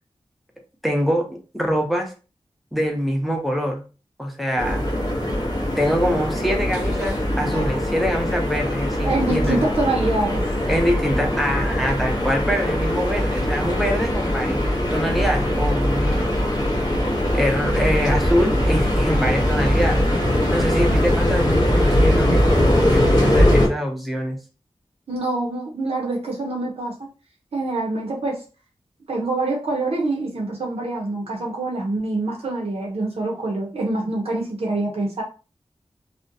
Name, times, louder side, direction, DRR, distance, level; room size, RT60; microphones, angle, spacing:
voice 1, 0.8-2.1 2.7-3.8 4.2-4.9 5.8-9.6 10.7-16.3 17.3-20.0 20.5-24.4, equal, ahead, 1 dB, 0.6 m, -24 dB
sound 1, 4.6-23.7, left 1 dB, 40° left, 0.6 m, -21 dB
voice 2, 9.0-10.4 25.1-26.9 27.5-28.4 29.1-35.2, right 2 dB, 75° right, -2 dB, 0.6 m, -25 dB
2.5 x 2.0 x 2.5 m, 0.34 s
wide cardioid pair, 85°, 10 cm